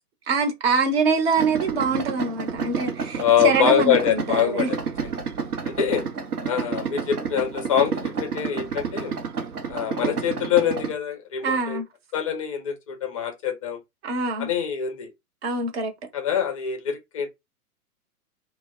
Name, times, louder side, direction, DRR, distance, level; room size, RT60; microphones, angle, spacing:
voice 1, 0.3-4.7 11.4-11.9 14.0-14.5 15.4-15.9, right 4 dB, 40° right, 0.9 m, -24 dB
Idling, 1.4-10.9, right 6 dB, 75° right, 0.7 m, -30 dB
voice 2, 3.1-5.1 5.6-6.0 6.4-9.2 9.7-11.8 12.1-13.8 14.4-15.1 16.1-17.3, left 9 dB, 25° left, 0.4 m, -24 dB
2.1 x 2.1 x 3.6 m
figure-of-eight pair, 115°, 45 cm